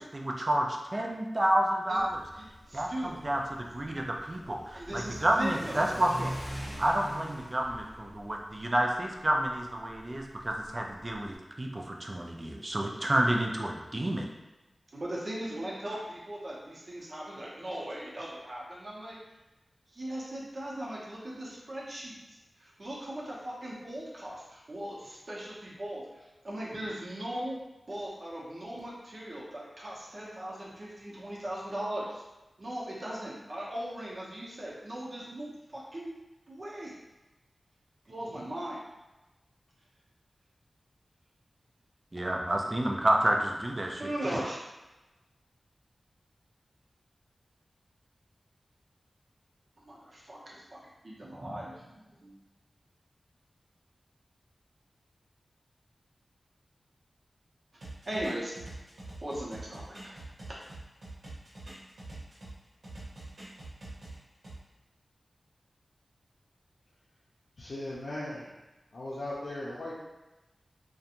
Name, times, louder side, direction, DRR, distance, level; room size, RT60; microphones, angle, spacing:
voice 1, 0.0-2.2 2.7-6.3 6.8-14.3 42.1-44.0, right 1 dB, 30° right, 0 dB, 0.4 m, -29 dB
Car / Accelerating revving vroom, 1.9-11.3, equal, ahead, 0.7 m, -44 dB
voice 2, 2.4-3.1 4.7-5.9 14.9-19.2 19.9-27.6 27.9-32.2 32.6-36.2 36.5-36.9 38.1-38.8 44.0-44.6 49.8-50.8 51.0-52.3 58.1-58.5 59.2-60.2, right 1 dB, 50° right, -5 dB, 0.7 m, -38 dB
sound 1, 57.8-62.5 62.8-64.6, right 2 dB, 85° right, 0.9 m, -45 dB
voice 3, 67.6-68.5 68.9-69.9, left 1 dB, 75° left, -9 dB, 0.5 m, -38 dB
2.5 x 2.2 x 2.8 m, 1.1 s
wide cardioid pair, 95°, 0 cm